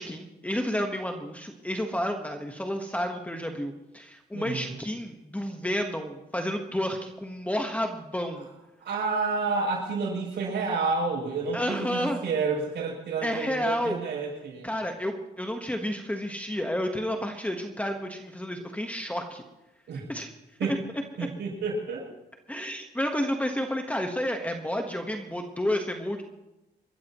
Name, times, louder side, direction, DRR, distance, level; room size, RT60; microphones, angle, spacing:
voice 1, 0.0-8.5 11.5-12.2 13.2-14.0 14.6-19.4 20.1-20.3 20.6-20.8 21.2-21.3 22.5-26.2, equal, 10° left, 4 dB, 1.3 m, -30 dB
voice 2, 4.3-4.8 8.8-14.7 19.9-20.1 20.6-20.8 21.2-22.1, right 4 dB, 80° right, -2 dB, 7.2 m, -30 dB
27.0 x 13.5 x 3.1 m, 0.97 s
cardioid pair, 105°, 18 cm